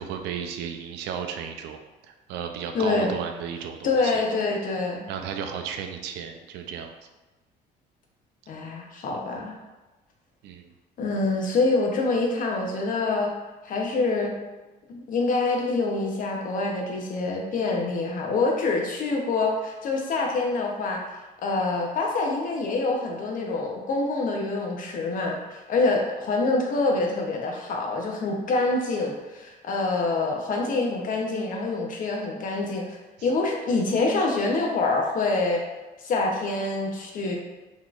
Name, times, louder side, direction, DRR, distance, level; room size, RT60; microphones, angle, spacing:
voice 1, 0.0-1.8 2.1-4.1 5.1-6.9 10.4-10.7, right 7 dB, 90° right, 5 dB, 0.4 m, -34 dB
voice 2, 2.7-3.1 3.8-5.0 8.5-9.5 11.0-13.3 13.6-14.3 14.9-21.0 21.4-33.0 33.2-35.6 36.0-37.4, left 3 dB, 55° left, 0 dB, 0.7 m, -26 dB
3.9 x 3.0 x 2.4 m, 1.1 s
cardioid pair, 110°, 17 cm